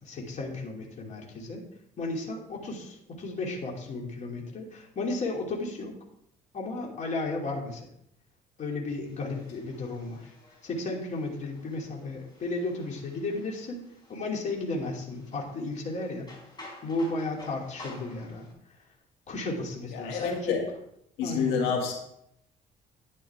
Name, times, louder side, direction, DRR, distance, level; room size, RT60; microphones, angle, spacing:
voice 1, 0.0-1.6 2.0-5.9 6.5-7.8 8.6-10.3 10.6-13.8 14.1-16.2 16.8-18.5 19.3-20.6 21.2-21.6, left 2 dB, 45° left, 0 dB, 2.9 m, -34 dB
sound 1, 9.0-18.5, left 2 dB, 25° left, 5.1 m, -51 dB
voice 2, 19.9-20.6 21.2-21.9, left 6 dB, 90° left, 0 dB, 2.3 m, -28 dB
10.5 x 10.5 x 3.6 m, 0.74 s
cardioid pair, 110°, 17 cm